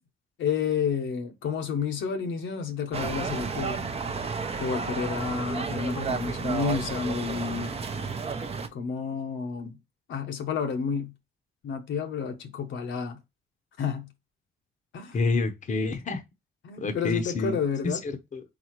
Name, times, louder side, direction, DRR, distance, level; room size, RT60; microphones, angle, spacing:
voice 1, 0.4-4.0 4.6-7.7 8.7-9.8 10.1-11.1 11.6-13.2 13.8-14.1 14.9-15.2 16.6-18.0, left 6 dB, 75° left, 0.9 m, -30 dB
sound 1, 2.9-8.7, right 5 dB, 30° right, 0.6 m, -32 dB
voice 2, 15.1-16.2 16.8-17.6 17.8-18.4, left 3 dB, 40° left, 0.8 m, -28 dB
4.1 x 3.6 x 3.0 m
cardioid pair, 90°, 20 cm